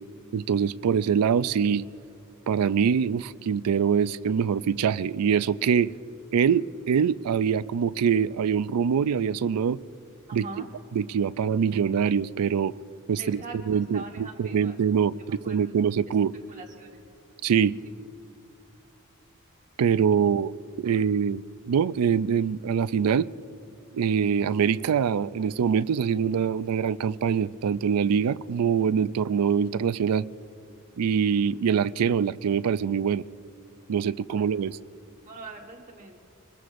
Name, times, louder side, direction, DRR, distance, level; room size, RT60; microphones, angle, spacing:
voice 1, 0.3-1.9 2.5-5.9 6.3-9.8 10.3-10.5 11.0-12.8 13.1-13.4 13.7-16.3 17.4-17.8 19.8-20.5 20.8-23.3 23.9-30.3 31.0-33.2 33.9-34.8, right 7 dB, 90° right, 0.4 m, -24 dB
voice 2, 10.3-10.7 13.2-14.8 15.4-15.6 16.5-17.0 17.8-17.9 20.2-20.4 20.8-21.0 34.3-34.5 35.2-36.2, right 3 dB, 35° right, 1.4 m, -43 dB
26.5 x 20.5 x 2.6 m
head